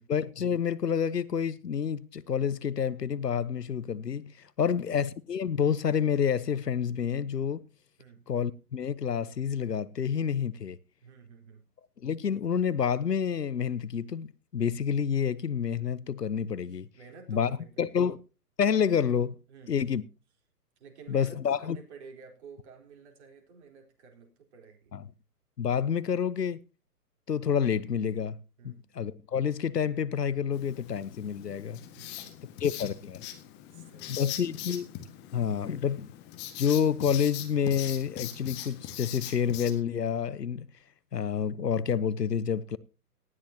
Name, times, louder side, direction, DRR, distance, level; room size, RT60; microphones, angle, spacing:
voice 1, 0.1-7.6 8.3-10.8 12.0-16.9 17.3-18.2 18.6-19.4 19.7-20.0 21.1-21.8 24.9-25.0 25.6-26.6 27.3-28.4 28.6-31.8 32.6-33.2 34.1-34.9 35.3-36.1 36.6-40.7 41.1-42.8, left 7 dB, 80° left, 1.1 m, -28 dB
voice 2, 4.6-4.9 8.0-8.3 11.0-11.6 16.7-18.0 19.5-19.8 20.8-24.9 28.6-28.9 31.9-32.7 33.7-34.6, right 5 dB, 45° right, 4.1 m, -52 dB
Writing, 30.5-39.7, left 12 dB, 20° left, 1.7 m, -41 dB
18.5 x 13.5 x 2.9 m
figure-of-eight pair, 130°, 48 cm